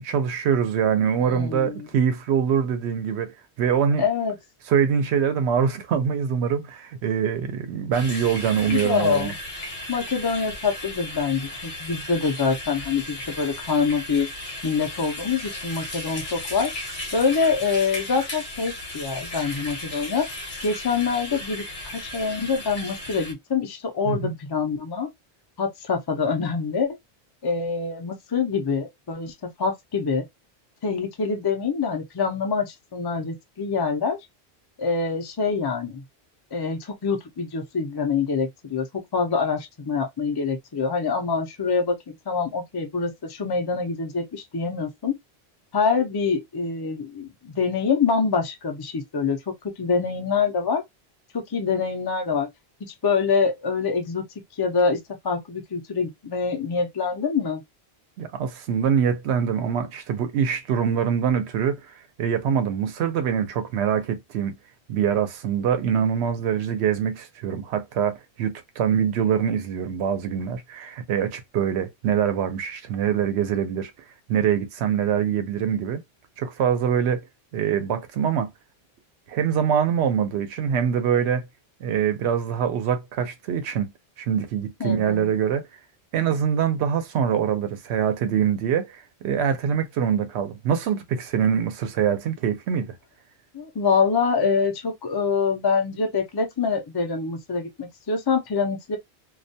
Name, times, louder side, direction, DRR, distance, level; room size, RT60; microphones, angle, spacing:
voice 1, 0.0-4.0 4.7-9.3 24.1-24.3 58.2-64.6 64.9-73.9 74.3-76.0 76.4-77.2 77.5-78.5 79.3-81.5 81.8-83.9 84.2-85.6 86.1-92.9, right 8 dB, 85° right, 0.8 m, -24 dB
voice 2, 1.2-1.9 4.0-4.4 8.7-9.4 9.9-14.3 14.6-16.7 17.1-20.3 20.6-21.6 21.9-25.1 25.6-27.0 27.4-30.2 30.8-34.2 34.8-36.0 36.5-45.1 45.7-50.8 51.3-52.5 52.8-54.3 54.6-57.6 84.8-85.3 93.5-99.0, left 5 dB, 35° left, 0.4 m, -25 dB
sound 1, 7.9-23.3, left 1 dB, 55° left, 1.0 m, -35 dB
2.3 x 2.1 x 2.6 m
omnidirectional pair, 1.1 m